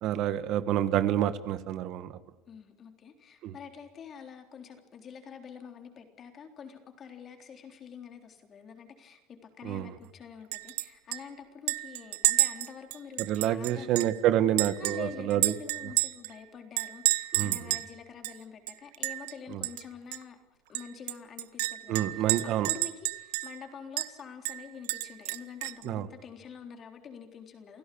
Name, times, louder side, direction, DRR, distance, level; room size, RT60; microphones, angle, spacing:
voice 1, 0.0-2.2 3.4-3.5 9.6-9.9 13.3-15.5 17.3-17.6 19.5-19.6 21.9-22.7 25.8-26.1, right 11 dB, 50° right, 13 dB, 1.4 m, -28 dB
voice 2, 2.5-13.9 14.8-20.4 20.7-27.8, left 6 dB, 30° left, 6 dB, 3.8 m, -46 dB
Chink clink, 10.5-10.9 11.1-11.2 11.7-14.2 14.6-16.3 16.8-17.9 18.2-18.3 18.7-19.3 19.6-19.8 20.1-20.2 20.7-23.6 24.0-24.1 24.4-25.8, right 19 dB, 90° right, 1.1 m, -30 dB
29.0 x 16.5 x 8.6 m, 0.96 s
cardioid pair, 150°, 0 cm